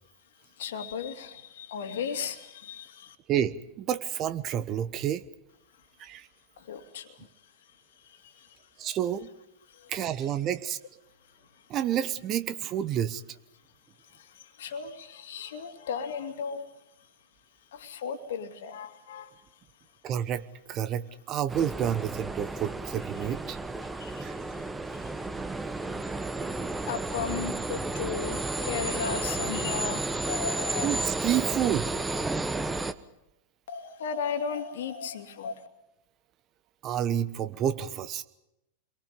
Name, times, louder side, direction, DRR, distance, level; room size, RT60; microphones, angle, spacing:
voice 1, 0.6-3.2 6.6-7.3 8.0-8.6 9.7-9.9 14.1-16.6 17.7-19.3 24.0-24.3 24.9-25.1 26.1-26.2 26.6-30.9 33.7-35.7, left 6 dB, 60° left, 8 dB, 2.6 m, -36 dB
voice 2, 3.3-5.2 6.0-6.3 8.8-9.3 9.9-10.8 11.7-13.2 20.0-20.4 20.7-23.6 24.2-24.3 30.8-31.9 36.8-38.2, right 10 dB, 35° right, 13 dB, 1.2 m, -29 dB
sound 1, 21.5-32.9, right 2 dB, 10° right, 1.2 m, -32 dB
29.0 x 23.0 x 5.3 m, 0.87 s
figure-of-eight pair, 90°, 0 cm